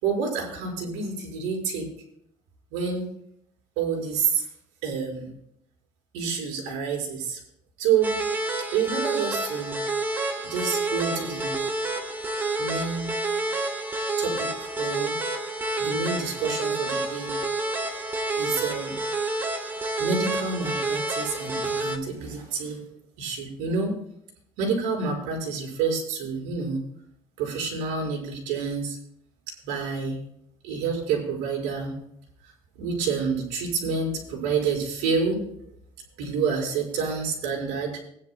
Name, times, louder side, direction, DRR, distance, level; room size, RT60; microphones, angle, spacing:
voice 1, 0.0-1.9 2.7-3.1 3.8-4.4 4.8-5.3 6.1-7.4 7.8-8.2 8.7-9.8 10.4-11.6 12.6-13.1 14.2-15.2 15.8-17.3 18.3-19.0 20.0-22.9 23.2-24.0 24.6-26.8 27.4-29.0 29.6-30.2 30.6-32.0 32.8-35.4 36.2-38.0, right 5 dB, 80° right, -1 dB, 5.4 m, -28 dB
sound 1, 8.0-22.0, right 2 dB, 15° right, 1.2 m, -29 dB
20.5 x 10.5 x 2.2 m, 0.72 s
cardioid pair, 155°, 13 cm